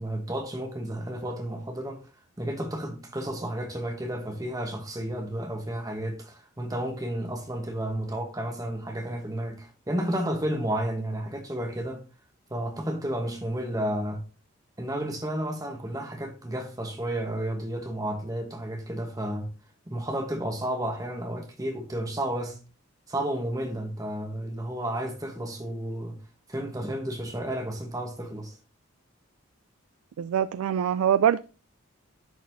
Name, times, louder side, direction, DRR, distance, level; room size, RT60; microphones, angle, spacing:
voice 1, 0.0-2.0 2.4-12.0 12.5-14.2 14.8-19.5 19.9-22.6 23.1-26.2 26.5-28.5, right 1 dB, 15° right, 1.1 m, -32 dB
voice 2, 30.2-31.4, right 9 dB, 85° right, 0.3 m, -23 dB
10.5 x 4.1 x 2.7 m
head